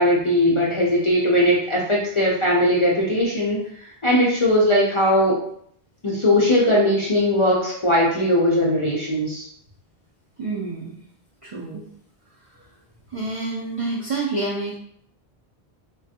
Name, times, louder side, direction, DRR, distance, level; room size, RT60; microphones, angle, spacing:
voice 1, 0.0-3.6 4.0-5.3 6.0-9.4, left 1 dB, 45° left, -5 dB, 0.4 m, -19 dB
voice 2, 10.4-11.0 11.4-11.8 13.1-14.8, right 3 dB, 55° right, -4 dB, 0.3 m, -28 dB
3.3 x 2.2 x 2.7 m, 0.67 s
omnidirectional pair, 1.1 m